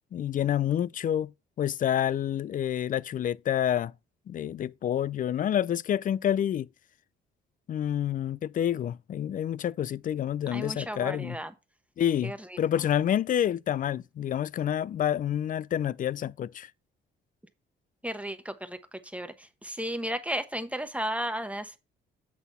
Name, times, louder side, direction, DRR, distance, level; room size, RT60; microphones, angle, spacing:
voice 1, 0.1-1.3 1.6-3.9 4.3-6.7 7.7-11.4 12.0-16.7, left 10 dB, 45° left, 0.4 m, -28 dB
voice 2, 10.5-11.5 12.2-12.6 18.0-21.8, equal, 5° right, 1.0 m, -34 dB
8.4 x 3.9 x 5.4 m
cardioid pair, 90°, 20 cm